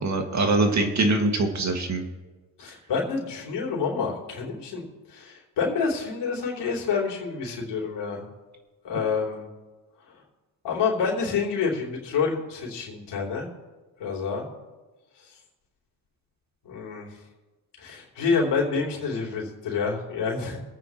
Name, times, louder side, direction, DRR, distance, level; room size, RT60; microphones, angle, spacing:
voice 1, 0.0-2.1, right 2 dB, 40° right, 3 dB, 2.1 m, -23 dB
voice 2, 2.6-8.3 8.8-9.5 10.6-13.5 14.0-14.5 16.7-17.1 17.8-20.6, left 5 dB, 70° left, -2 dB, 3.5 m, -28 dB
25.0 x 9.0 x 3.1 m, 1.2 s
cardioid pair, 85°, 43 cm